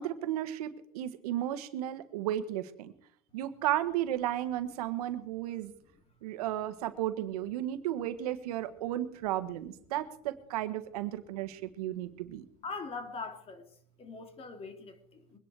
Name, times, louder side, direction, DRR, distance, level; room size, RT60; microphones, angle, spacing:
voice 1, 0.0-2.9 3.3-5.7 6.2-12.4, right 12 dB, 85° right, 1.5 m, -34 dB
voice 2, 12.6-13.6 14.0-15.4, left 4 dB, 30° left, 2.5 m, -42 dB
23.0 x 10.0 x 4.8 m
supercardioid pair, 120°, 19 cm